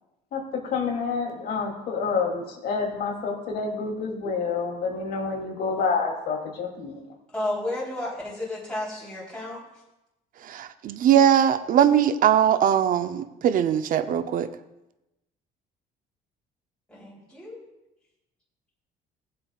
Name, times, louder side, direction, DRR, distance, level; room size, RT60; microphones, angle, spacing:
voice 1, 0.7-7.0, left 5 dB, 65° left, 0 dB, 2.7 m, -28 dB
voice 2, 7.3-9.6 16.9-17.6, left 1 dB, 5° left, -7 dB, 3.5 m, -32 dB
voice 3, 10.4-14.5, right 9 dB, 55° right, 11 dB, 0.6 m, -21 dB
18.5 x 7.7 x 2.4 m, 0.94 s
cardioid pair, 110°, 17 cm